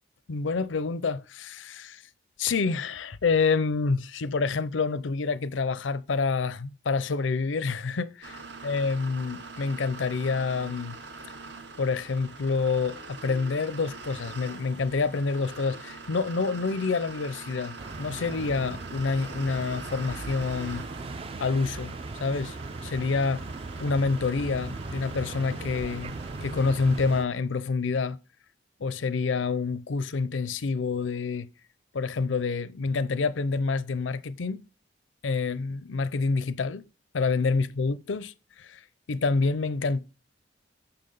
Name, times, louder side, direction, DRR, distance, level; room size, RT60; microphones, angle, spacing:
voice 1, 0.3-2.0 2.4-11.0 11.8-20.9 21.4-21.9 22.2-22.6 22.8-23.4 23.8-26.1 26.4-28.2 28.8-31.5 31.9-34.6 35.2-36.9 37.1-38.8 39.1-40.0, left 4 dB, 85° left, 0.5 m, -27 dB
sound 1, 8.2-27.2, right 3 dB, 65° right, 1.0 m, -44 dB
sound 2, 17.8-27.3, right 3 dB, 30° right, 0.4 m, -38 dB
6.9 x 5.8 x 5.3 m
head